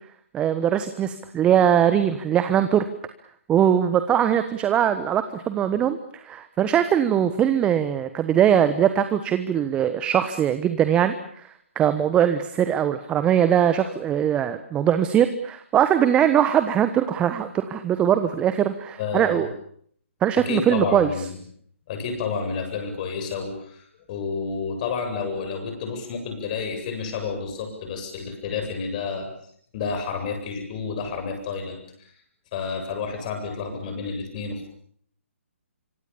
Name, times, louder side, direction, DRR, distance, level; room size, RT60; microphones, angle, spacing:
voice 1, 0.3-2.9 3.5-19.5 20.2-21.1, right 9 dB, 15° right, 11 dB, 1.2 m, -21 dB
voice 2, 19.0-19.5 20.4-21.4 21.9-29.3 29.7-32.1 32.5-34.7, left 5 dB, 35° left, 5 dB, 7.9 m, -30 dB
26.5 x 25.5 x 7.2 m, 0.63 s
figure-of-eight pair, 135°, 7 cm